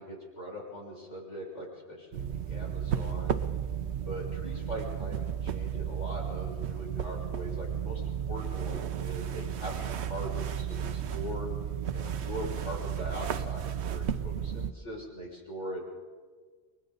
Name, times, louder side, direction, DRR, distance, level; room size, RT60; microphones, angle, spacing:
voice 1, 0.0-3.4 4.0-11.5 11.9-15.9, equal, 90° left, -3 dB, 6.5 m, -41 dB
sound 1, 2.1-14.7, right 8 dB, 70° right, 1.0 m, -33 dB
29.5 x 22.0 x 4.0 m, 1.5 s
omnidirectional pair, 1.2 m